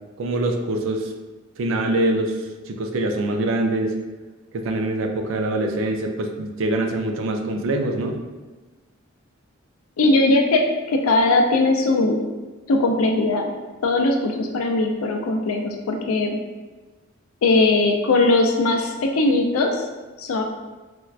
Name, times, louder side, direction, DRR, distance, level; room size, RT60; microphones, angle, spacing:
voice 1, 0.2-1.1 1.6-2.4 2.7-4.0 4.5-8.2, right 2 dB, 65° right, 4 dB, 0.4 m, -24 dB
voice 2, 10.0-12.2 12.7-13.5 13.8-16.4 17.4-19.8 20.2-20.4, left 2 dB, 85° left, 3 dB, 0.4 m, -19 dB
4.2 x 2.2 x 2.3 m, 1.2 s
head